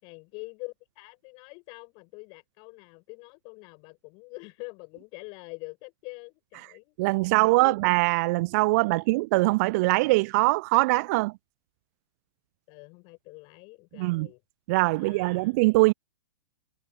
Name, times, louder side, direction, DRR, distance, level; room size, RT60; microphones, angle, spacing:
voice 1, 0.0-7.0 7.3-7.8 8.7-9.1 12.7-14.4 15.0-15.6, left 31 dB, 35° left, 7.4 m, -45 dB
voice 2, 7.0-11.3 14.0-14.3 14.7-15.9, right 24 dB, 35° right, 0.5 m, -22 dB
figure-of-eight pair, 110°, 14 cm